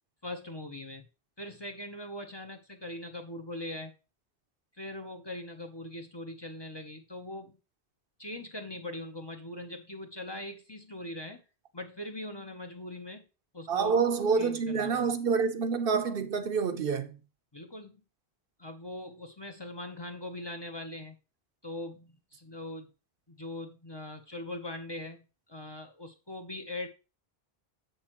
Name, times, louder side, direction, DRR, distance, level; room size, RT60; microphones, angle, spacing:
voice 1, 0.2-1.0 1.4-3.9 4.8-7.6 8.2-11.4 11.7-13.2 13.5-14.0 14.4-15.2 17.5-18.0 18.6-21.2 21.6-22.9 23.3-26.9, left 1 dB, 30° left, 0.8 m, -41 dB
voice 2, 13.7-17.2, right 5 dB, 65° right, 0.9 m, -27 dB
7.5 x 6.4 x 3.0 m
omnidirectional pair, 1.0 m